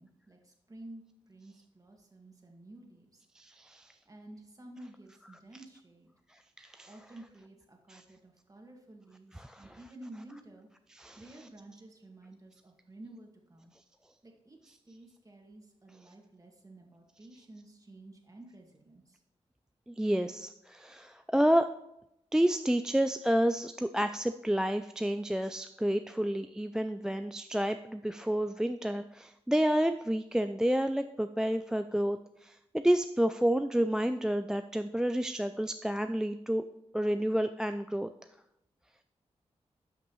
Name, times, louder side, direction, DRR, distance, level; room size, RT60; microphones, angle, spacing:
voice 1, 0.0-3.2 4.1-6.1 6.9-10.7 11.2-13.7 14.2-19.2, right 1 dB, 30° right, 1 dB, 1.8 m, -52 dB
voice 2, 3.4-3.9 6.6-6.9 7.9-8.0 9.3-9.7 10.9-11.5 19.9-21.7 22.3-36.7 36.9-38.1, right 1 dB, 5° right, 9 dB, 0.3 m, -30 dB
12.0 x 5.9 x 3.1 m, 0.86 s
cardioid pair, 75°, 12 cm